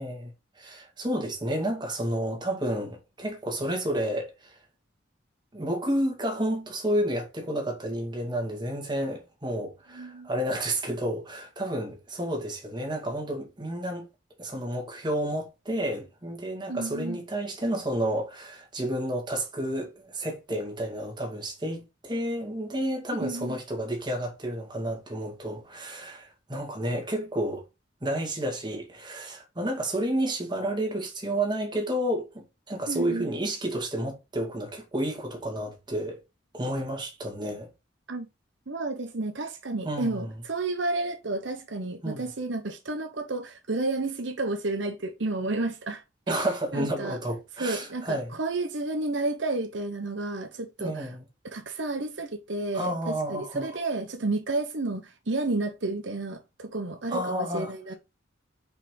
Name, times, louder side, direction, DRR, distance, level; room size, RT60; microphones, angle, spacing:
voice 1, 0.0-4.6 5.5-14.1 14.4-27.6 28.0-36.2 36.5-37.7 39.8-40.4 42.0-42.3 46.3-48.4 50.8-51.3 52.7-53.8 57.1-57.7, right 1 dB, 25° right, 2.3 m, -31 dB
voice 2, 9.9-10.3 16.7-17.2 23.2-23.6 32.9-33.3 38.1-38.3 38.7-46.5 46.7-47.2 47.6-51.1 51.4-57.9, right 2 dB, 70° right, 1.0 m, -31 dB
5.6 x 5.0 x 4.8 m
head